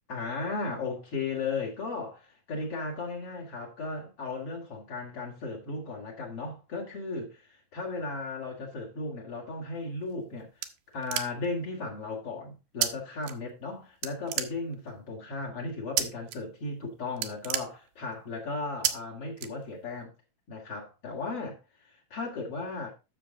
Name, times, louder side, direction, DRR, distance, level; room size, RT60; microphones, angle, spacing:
voice 1, 0.1-10.7 10.9-20.1 20.5-22.9, left 3 dB, 45° left, 2.5 m, -36 dB
sound 1, 9.9-11.6 12.8-12.9 13.2-13.7 14.0-15.0 16.0-16.4 16.7-16.8 17.1-18.3 18.8-18.9 19.4-20.0, right 12 dB, 85° right, 2.7 m, -31 dB
10.0 x 6.9 x 3.8 m
omnidirectional pair, 4.1 m